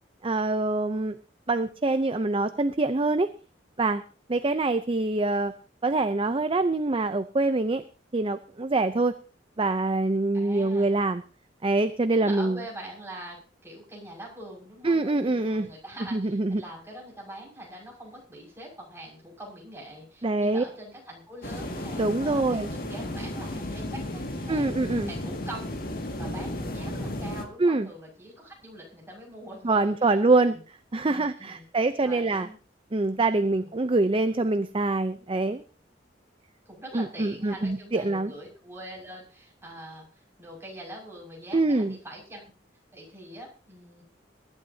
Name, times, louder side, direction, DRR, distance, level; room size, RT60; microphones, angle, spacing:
voice 1, 0.2-1.2 1.5-3.3 3.8-4.0 4.3-5.5 5.8-7.8 8.1-9.1 9.6-11.2 11.6-12.6 14.8-15.7 16.1-16.6 20.2-20.6 22.0-22.7 24.5-25.1 27.6-27.9 29.6-30.6 30.9-32.5 32.9-35.6 36.9-38.3 41.5-42.0, right 2 dB, 30° right, 10 dB, 0.6 m, -25 dB
voice 2, 10.3-11.0 12.1-25.8 26.2-30.6 31.1-31.6 32.0-32.6 33.4-33.7 36.7-42.4 42.9-44.0, right 1 dB, 15° right, -3 dB, 6.1 m, -43 dB
sound 1, 21.4-27.4, left 1 dB, 55° left, 2.1 m, -34 dB
22.5 x 12.0 x 2.8 m, 0.36 s
head